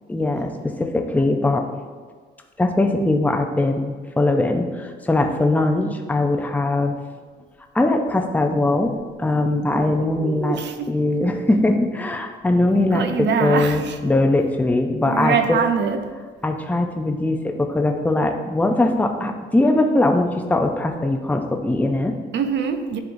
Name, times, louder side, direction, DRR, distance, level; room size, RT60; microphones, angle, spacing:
voice 1, 0.1-1.6 2.6-7.0 7.7-10.6 10.9-15.4 16.4-22.2, left 2 dB, 10° left, 4 dB, 0.6 m, -21 dB
voice 2, 9.7-11.0 12.7-14.0 15.0-16.1 22.3-23.0, right 6 dB, 65° right, 7 dB, 0.6 m, -24 dB
10.5 x 3.6 x 2.6 m, 1.5 s
cardioid pair, 90°, 20 cm